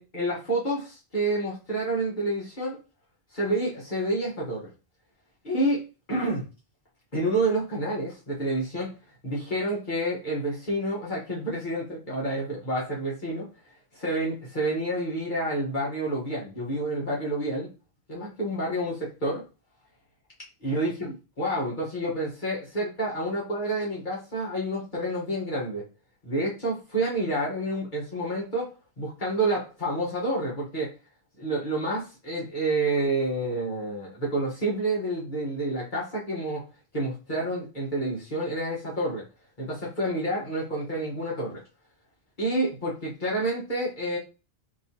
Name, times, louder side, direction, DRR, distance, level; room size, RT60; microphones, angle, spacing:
voice 1, 0.0-2.8 3.3-4.7 5.4-6.5 7.1-8.9 9.2-13.5 13.9-17.7 18.1-19.4 20.6-25.8 26.2-30.9 31.4-36.7 36.9-39.2 39.6-41.6 42.4-44.2, right 1 dB, 45° left, -5 dB, 1.5 m, -29 dB
4.5 x 3.2 x 2.9 m, 0.31 s
omnidirectional pair, 1.1 m